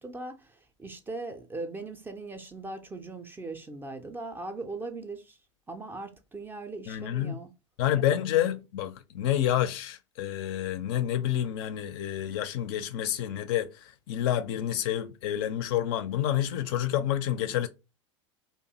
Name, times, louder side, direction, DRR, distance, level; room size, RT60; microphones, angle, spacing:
voice 1, 0.0-5.4 5.7-7.5, right 3 dB, 10° right, 0.4 m, -39 dB
voice 2, 6.9-7.4 7.8-17.7, left 11 dB, 50° left, 0.4 m, -29 dB
2.6 x 2.3 x 2.7 m
figure-of-eight pair, 85°, 16 cm